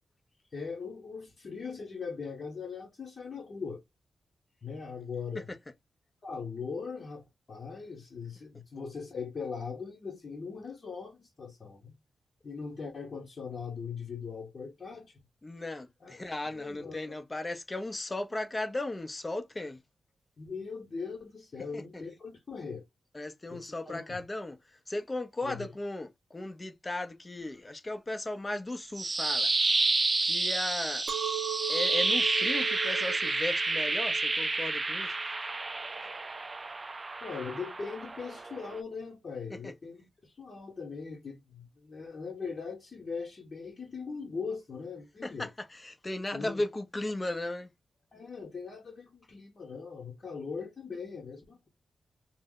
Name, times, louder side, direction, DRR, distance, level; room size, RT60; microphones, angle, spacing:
voice 1, 0.5-3.8 4.6-5.5 6.2-7.2 7.5-11.9 12.4-15.2 16.0-16.2 16.5-17.2 20.4-22.8 23.5-24.2 25.4-25.7 37.2-45.5 46.3-46.6 48.1-51.7, left 5 dB, 55° left, 1.0 m, -40 dB
voice 2, 15.4-19.8 21.7-22.0 23.1-29.5 30.2-31.1 31.7-35.1 39.5-39.7 45.2-47.7, left 2 dB, 25° left, 0.7 m, -36 dB
sound 1, 28.7-38.8, right 3 dB, 30° right, 0.4 m, -30 dB
Chink clink, 31.1-36.3, right 12 dB, 90° right, 0.5 m, -39 dB
2.7 x 2.1 x 3.7 m
cardioid pair, 70°, 0 cm